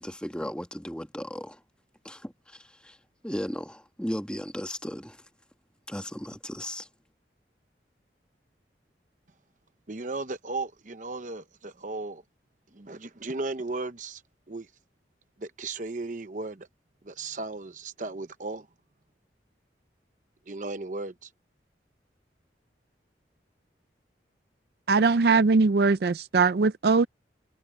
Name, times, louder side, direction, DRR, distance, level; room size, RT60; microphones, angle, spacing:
voice 1, 0.0-1.6 2.0-3.0 3.2-5.2 5.9-6.9, equal, 5° left, 1.8 m, -36 dB
voice 2, 9.9-12.2 12.7-14.2 14.5-14.7 15.4-16.7 17.0-18.7 20.5-21.3, right 3 dB, 45° right, 0.9 m, -35 dB
voice 3, 24.9-27.1, right 4 dB, 60° right, 0.4 m, -21 dB
head